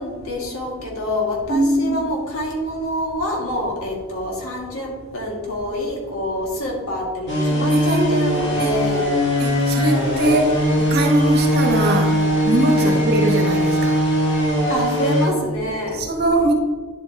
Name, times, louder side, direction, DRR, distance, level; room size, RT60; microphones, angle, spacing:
voice 1, 0.0-9.1 12.8-13.0 14.7-16.0, left 1 dB, 85° left, 2.1 m, -26 dB
voice 2, 1.5-2.0 7.7-8.7 9.4-10.5 10.9-14.0 15.9-16.5, right 1 dB, 45° right, 1.2 m, -21 dB
sound 1, 7.3-15.3, equal, 55° left, 2.1 m, -20 dB
10.0 x 7.8 x 2.9 m
head